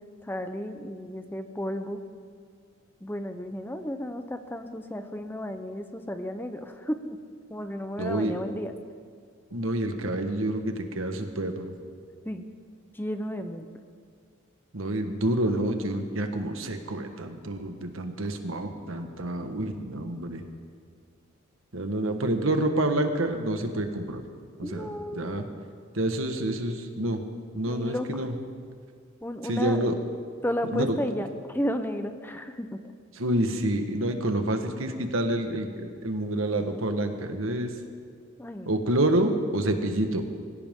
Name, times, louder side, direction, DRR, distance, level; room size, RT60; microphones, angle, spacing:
voice 1, 0.2-2.0 3.0-7.2 7.5-8.7 12.2-12.5 12.9-13.7 24.6-25.6 27.7-28.1 29.2-29.8 30.4-32.8 38.4-38.7, equal, 10° left, 7 dB, 0.7 m, -33 dB
voice 2, 8.0-8.3 9.5-11.7 14.7-20.4 21.7-24.2 24.6-25.4 25.9-27.2 27.5-28.3 29.5-29.9 30.7-30.9 33.1-37.7 38.7-40.2, right 1 dB, 80° right, 6 dB, 1.4 m, -28 dB
23.5 x 16.0 x 3.7 m, 2.1 s
head